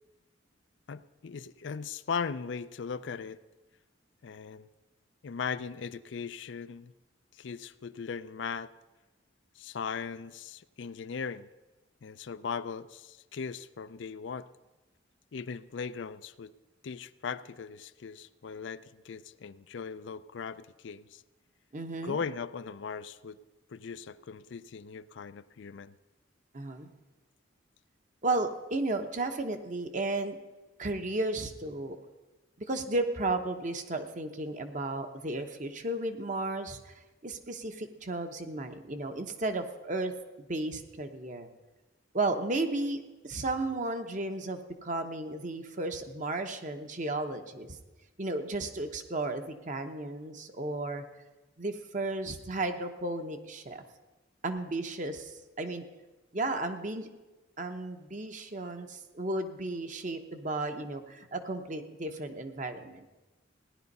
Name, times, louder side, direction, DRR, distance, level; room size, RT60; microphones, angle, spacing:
voice 1, 0.9-3.4 4.2-4.7 5.2-6.9 7.3-8.7 9.6-11.5 12.0-14.5 15.3-16.5 16.8-21.2 22.0-23.4 23.7-26.0, left 6 dB, 65° left, 14 dB, 0.4 m, -38 dB
voice 2, 21.7-22.2 26.5-26.9 28.2-30.4 30.8-32.0 32.7-36.9 37.2-40.1 40.4-41.5 42.1-47.8 48.2-51.0 51.6-53.8 54.4-55.8 56.3-57.1 57.6-63.1, right 2 dB, 40° right, 7 dB, 1.0 m, -34 dB
16.0 x 10.5 x 5.4 m, 1.1 s
head